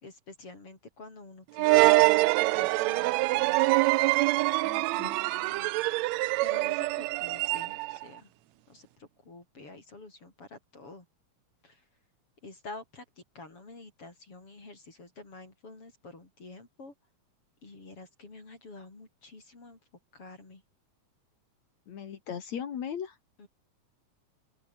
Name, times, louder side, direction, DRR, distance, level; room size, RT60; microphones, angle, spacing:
voice 1, 0.0-3.6 4.8-5.8 6.4-8.3 8.7-11.1 11.6-11.8 12.4-16.9 17.6-19.8 20.1-20.6 23.4-23.5, left 3 dB, 45° left, 6.4 m, -48 dB
sound 1, 1.6-8.0, right 21 dB, 80° right, 1.6 m, -25 dB
voice 2, 4.6-5.3 21.9-23.2, left 8 dB, 65° left, 3.2 m, -38 dB
open air
omnidirectional pair, 3.5 m